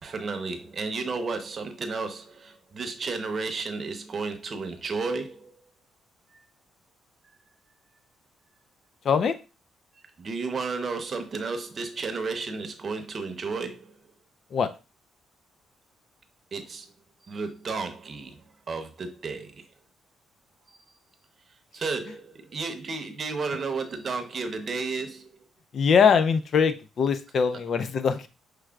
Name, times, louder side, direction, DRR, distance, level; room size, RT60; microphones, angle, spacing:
voice 1, 0.0-5.5 10.2-14.0 16.5-16.9 17.2-19.7 21.7-25.3 27.5-27.6, right 4 dB, 45° right, 0.8 m, -33 dB
voice 2, 9.1-9.4 14.5-14.7 25.7-28.3, left 6 dB, 55° left, 0.4 m, -22 dB
6.0 x 3.2 x 2.3 m
cardioid pair, 90°, 0 cm